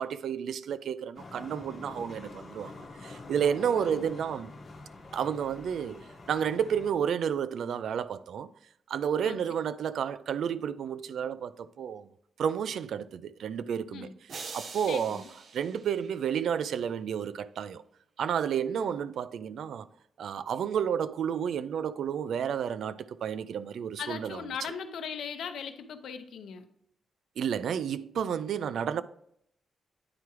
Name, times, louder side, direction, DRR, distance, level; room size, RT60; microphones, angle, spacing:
voice 1, 0.0-2.7 3.0-4.5 5.1-6.0 6.3-8.5 8.9-12.1 12.4-14.1 14.5-15.2 15.5-17.8 18.2-19.9 20.2-24.4 27.4-29.0, right 8 dB, 70° right, 0.3 m, -31 dB
sound 1, 1.1-6.9, left 3 dB, 40° left, 1.4 m, -46 dB
voice 2, 3.6-4.1 9.2-9.4 13.9-14.1 14.9-15.3 18.7-18.9 24.0-26.7, left 7 dB, 85° left, 0.7 m, -39 dB
sound 2, 14.3-16.6, right 4 dB, 50° right, 0.7 m, -44 dB
9.6 x 4.7 x 3.0 m
wide cardioid pair, 175°, 0 cm